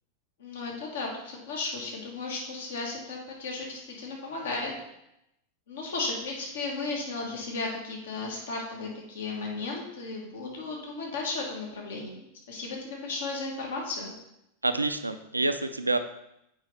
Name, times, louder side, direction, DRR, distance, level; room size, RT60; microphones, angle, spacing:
voice 1, 0.4-4.7 5.7-12.2 12.5-14.1, left 3 dB, 60° left, -1 dB, 1.6 m, -35 dB
voice 2, 14.6-16.0, right 2 dB, 85° right, 10 dB, 0.4 m, -27 dB
7.3 x 5.2 x 3.3 m, 0.83 s
figure-of-eight pair, 90°, 0 cm